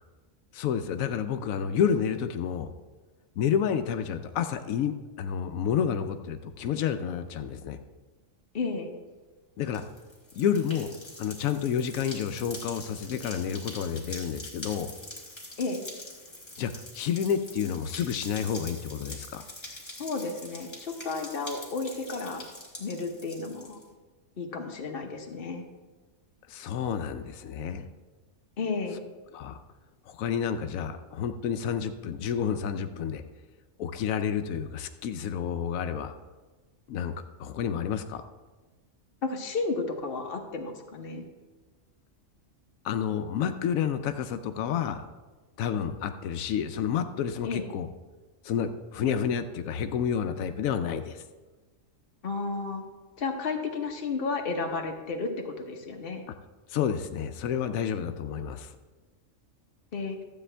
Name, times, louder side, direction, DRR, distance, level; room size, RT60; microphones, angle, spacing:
voice 1, 0.5-2.7 3.4-7.8 9.6-9.8 10.3-10.9 11.2-14.9 16.6-19.4 26.5-27.9 29.3-29.6 30.1-33.2 33.8-36.2 36.9-37.1 37.4-38.2 42.8-45.1 45.6-47.9 48.4-51.2 56.7-58.7, left 8 dB, 85° left, 9 dB, 1.0 m, -30 dB
voice 2, 8.5-8.9 15.6-15.9 20.0-22.4 22.8-23.8 24.4-25.7 28.6-29.0 39.2-41.3 47.5-47.7 52.2-52.8 53.2-56.2 59.9-60.2, left 4 dB, 45° left, 3 dB, 1.2 m, -32 dB
sound 1, 9.6-23.8, left 1 dB, 20° left, 1.9 m, -44 dB
12.5 x 8.3 x 3.3 m, 1.2 s
omnidirectional pair, 1.4 m